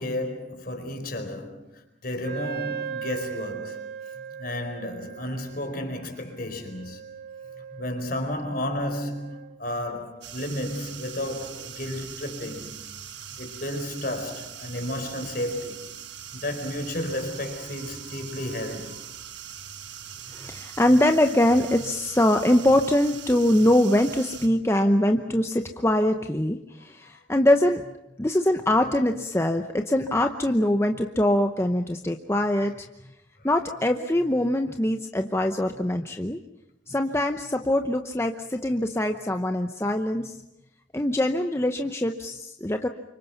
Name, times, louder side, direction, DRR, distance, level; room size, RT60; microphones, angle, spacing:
voice 1, 0.0-3.9 4.4-7.0 7.8-12.8 13.4-15.9 16.3-19.0, left 1 dB, 50° left, 4.5 m, -32 dB
Wind instrument woodwind instrument, 2.2-9.6, right 7 dB, 55° right, 1.4 m, -39 dB
sound 1, 10.2-24.5, right 8 dB, 70° right, 1.6 m, -41 dB
voice 2, 20.3-27.9 28.2-32.9 33.4-36.4 36.9-40.3 40.9-42.9, left 1 dB, 15° left, 0.8 m, -23 dB
29.0 x 25.5 x 5.9 m
head